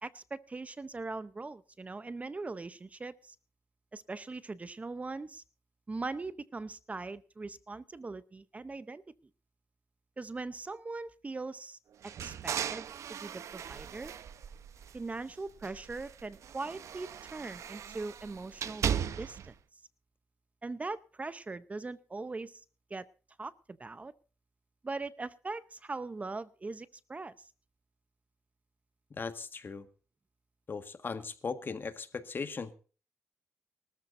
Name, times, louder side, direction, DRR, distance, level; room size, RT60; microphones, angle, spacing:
voice 1, 0.0-3.4 3.9-5.4 5.9-9.0 10.2-11.8 12.2-14.1 14.9-18.9 19.2-19.5 20.6-22.6 22.9-23.0 23.4-24.1 24.8-27.5, right 3 dB, 25° right, 16 dB, 0.7 m, -40 dB
sound 1, 12.0-15.2 15.6-19.5, right 8 dB, 75° right, 0.8 m, -38 dB
voice 2, 29.1-29.8 30.7-32.8, left 5 dB, 40° left, 10 dB, 1.6 m, -38 dB
23.5 x 13.5 x 2.6 m, 0.37 s
cardioid pair, 95°, 5 cm